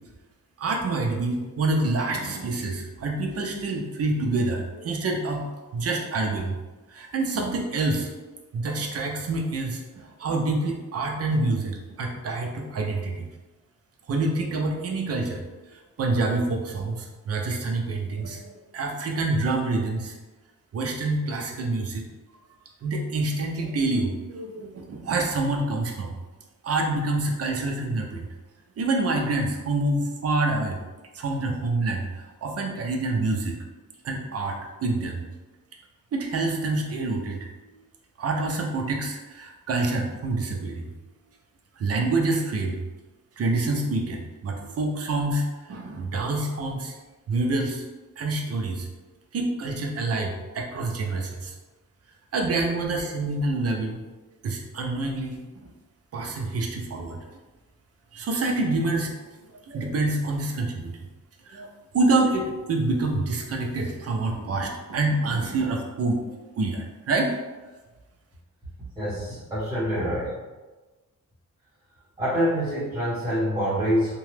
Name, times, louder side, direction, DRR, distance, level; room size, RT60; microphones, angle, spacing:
voice 1, 0.6-6.6 6.9-8.1 8.5-13.3 14.1-15.4 15.7-20.1 20.7-22.0 22.8-26.2 26.6-28.3 28.8-30.8 31.1-33.6 34.0-35.2 36.1-37.5 38.2-40.9 41.8-42.8 43.4-46.9 47.3-47.8 48.2-48.9 49.3-51.5 52.3-54.0 54.4-55.7 56.1-57.2 58.1-59.1 59.6-60.9 61.5-61.7 61.9-66.2 66.6-67.4, right 2 dB, 45° right, 1 dB, 0.5 m, -27 dB
voice 2, 69.0-70.3 72.2-74.2, equal, 15° right, -11 dB, 0.9 m, -26 dB
2.8 x 2.2 x 3.2 m, 1.2 s
wide cardioid pair, 155°, 33 cm